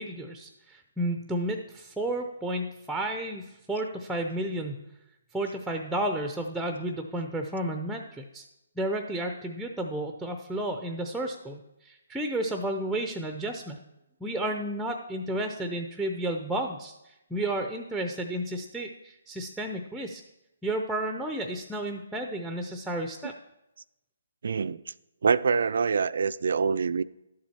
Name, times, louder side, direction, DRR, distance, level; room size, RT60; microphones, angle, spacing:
voice 1, 0.0-4.8 5.3-8.4 8.8-13.8 14.2-20.2 20.6-23.3, right 1 dB, ahead, 0.6 m, -32 dB
voice 2, 24.4-24.8 25.2-27.0, right 5 dB, 70° right, 0.4 m, -25 dB
12.0 x 7.5 x 4.3 m
hypercardioid pair, 155°, 0 cm